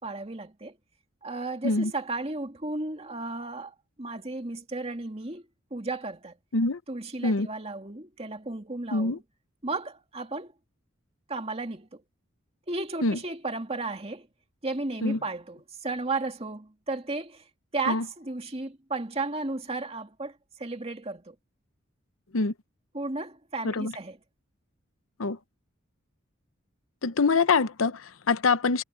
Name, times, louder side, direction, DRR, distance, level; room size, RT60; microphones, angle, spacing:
voice 1, 0.0-0.7 1.2-5.4 5.7-6.3 6.9-9.2 9.6-10.5 11.3-11.9 12.7-14.3 14.6-17.4 17.7-20.3 20.6-21.3 22.9-24.2, right 3 dB, 30° right, 2.3 m, -34 dB
voice 2, 27.0-28.8, left 3 dB, 80° left, 0.8 m, -24 dB
head